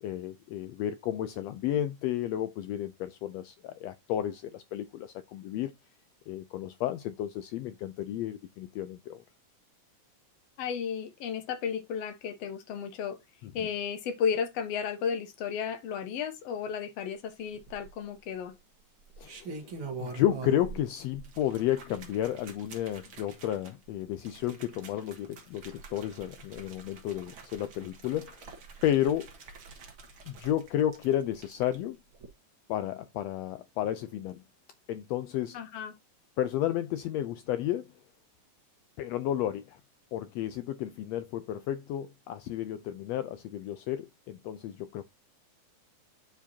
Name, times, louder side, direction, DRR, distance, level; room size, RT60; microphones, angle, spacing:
voice 1, 0.0-5.7 6.3-9.2 13.4-13.7 19.2-19.7 20.0-28.5 28.8-29.3 30.3-32.0 32.7-34.4 34.9-35.6 36.4-37.9 39.0-39.8 40.1-45.0, left 11 dB, 85° left, 1.5 m, -32 dB
voice 2, 10.6-13.2 13.5-18.5 35.5-35.9, left 7 dB, 60° left, 2.0 m, -33 dB
sound 1, 17.5-18.2 19.0-20.8 21.1-31.8 32.1-32.3, right 4 dB, 50° right, 2.0 m, -45 dB
10.0 x 4.6 x 2.7 m
omnidirectional pair, 3.5 m